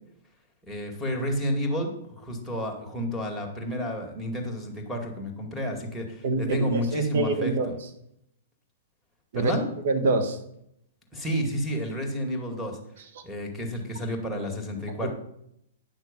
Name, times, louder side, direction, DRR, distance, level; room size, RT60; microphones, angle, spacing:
voice 1, 0.7-7.7 9.3-9.6 11.1-12.8 13.2-15.1, equal, ahead, -2 dB, 2.3 m, -30 dB
voice 2, 6.2-7.7 9.3-9.5 9.8-10.4 15.0-15.1, right 3 dB, 60° right, 7 dB, 1.5 m, -25 dB
9.6 x 6.1 x 5.3 m, 0.75 s
hypercardioid pair, 115°, 0 cm